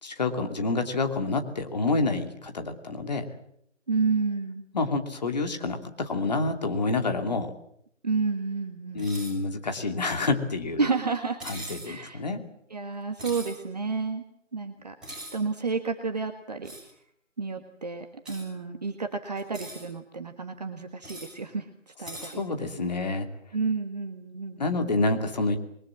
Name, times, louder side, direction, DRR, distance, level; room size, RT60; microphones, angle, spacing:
voice 1, 0.0-3.3 4.7-7.5 8.9-10.9 11.4-12.4 22.2-23.3 24.6-25.6, left 3 dB, 35° left, 5 dB, 2.7 m, -28 dB
voice 2, 3.9-4.6 8.0-9.1 10.8-11.4 11.8-12.2 12.7-14.2 14.5-14.9 15.3-16.7 17.4-22.7 23.5-24.9, right 4 dB, 35° right, 5 dB, 1.6 m, -30 dB
sound 1, 9.0-9.4 11.4-11.9 13.2-13.6 15.0-15.4 16.6-16.9 18.2-18.4 19.4-19.8 21.0-21.3 22.1-22.3, right 1 dB, ahead, 6.9 m, -41 dB
28.5 x 22.0 x 7.5 m, 0.73 s
figure-of-eight pair, 165°, 37 cm